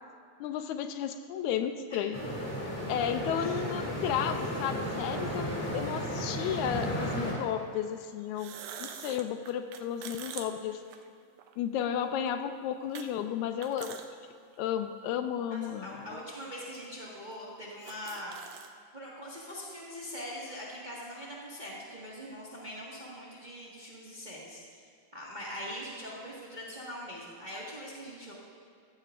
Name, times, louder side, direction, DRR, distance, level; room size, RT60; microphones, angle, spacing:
voice 1, 0.4-2.2 2.9-8.5 8.8-10.8 11.6-14.0 14.6-16.2, left 9 dB, 85° left, 8 dB, 2.0 m, -33 dB
sound 1, 2.1-7.3, equal, 5° left, 1.7 m, -34 dB
sound 2, 5.3-5.4 6.7-6.8 8.2-11.5 12.0-12.1 12.9-13.1 13.4-14.1 14.5-14.6 15.5-15.6 16.4-16.5 16.7-16.9 17.3-17.4 17.6-18.7, right 8 dB, 85° right, 2.2 m, -44 dB
voice 2, 15.5-18.4 18.9-24.6 25.1-28.3, equal, 20° right, -6 dB, 1.3 m, -42 dB
15.5 x 14.0 x 2.5 m, 2.3 s
omnidirectional pair, 3.4 m